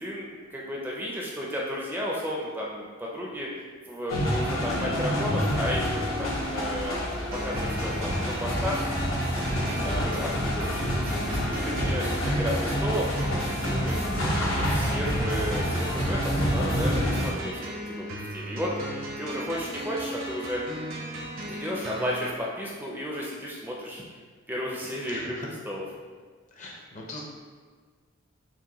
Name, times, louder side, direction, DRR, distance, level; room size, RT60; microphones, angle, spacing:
voice 1, 0.0-3.5 3.9-8.8 9.5-13.1 13.6-18.7 19.2-20.6 21.5-24.0 24.5-25.9, equal, 10° right, -4 dB, 0.4 m, -33 dB
sound 1, 4.1-17.3, equal, 80° left, 0.9 m, -28 dB
sound 2, 7.3-22.3, right 1 dB, 80° right, 0.8 m, -37 dB
voice 2, 9.5-10.0 13.6-14.0 25.1-25.5 26.6-27.2, left 1 dB, 40° left, -1 dB, 0.6 m, -39 dB
6.0 x 2.2 x 2.9 m, 1.5 s
head